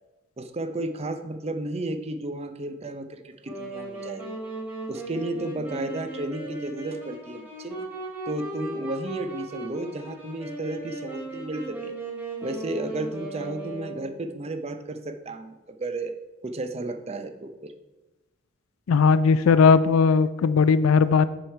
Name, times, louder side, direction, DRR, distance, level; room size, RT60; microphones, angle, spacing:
voice 1, 0.4-4.4 4.9-7.9 8.3-11.9 12.4-16.2 16.4-17.7, right 2 dB, 30° right, 9 dB, 0.6 m, -33 dB
Wind instrument woodwind instrument, 3.4-14.3, right 2 dB, 10° right, 2.5 m, -37 dB
voice 2, 18.9-21.3, left 5 dB, 80° left, 14 dB, 0.4 m, -18 dB
7.6 x 6.5 x 4.5 m, 1.1 s
head